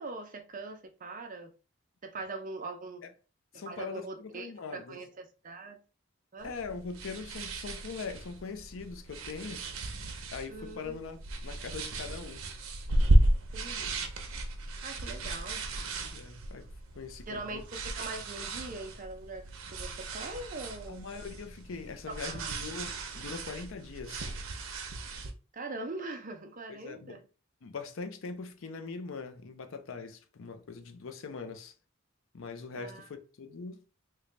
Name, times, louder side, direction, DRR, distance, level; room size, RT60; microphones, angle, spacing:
voice 1, 0.0-1.5 2.0-3.0 3.5-5.8 6.3-6.5 10.5-11.0 13.5-14.0 14.8-15.7 17.3-21.0 22.1-22.5 25.5-27.2 32.8-33.1, right 2 dB, 40° right, 0.6 m, -42 dB
voice 2, 3.5-5.0 6.4-9.6 10.3-12.4 15.2-15.3 16.0-16.7 17.0-17.6 20.9-24.3 26.7-27.2 27.6-31.7 32.3-33.8, left 4 dB, 65° left, 0.5 m, -42 dB
sound 1, 6.4-25.3, right 1 dB, 80° right, 0.7 m, -33 dB
3.1 x 2.2 x 3.8 m
head